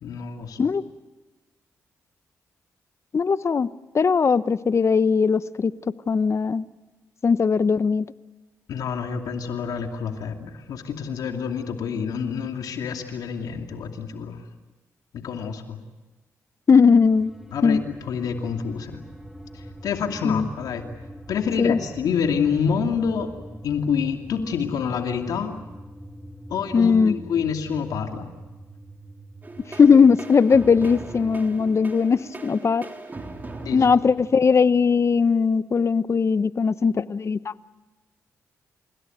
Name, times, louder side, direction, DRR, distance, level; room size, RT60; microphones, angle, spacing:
voice 1, 0.0-0.6 8.7-14.4 15.1-15.8 17.5-19.0 19.5-20.9 21.3-23.3 23.6-25.6 26.5-28.3 33.6-33.9, left 6 dB, 80° left, 4 dB, 2.6 m, -27 dB
voice 2, 3.1-3.7 3.9-5.7 6.1-6.6 7.2-8.0 16.7-17.3 17.6-17.8 20.2-20.5 21.6-21.8 26.7-27.1 29.8-32.9 33.7-37.5, left 5 dB, 45° left, 15 dB, 1.0 m, -19 dB
sound 1, 16.9-30.1, right 1 dB, 5° right, 3.1 m, -43 dB
sound 2, 29.4-34.9, right 2 dB, 30° right, 3.7 m, -39 dB
29.5 x 17.0 x 9.3 m, 1.2 s
supercardioid pair, 55°, 6 cm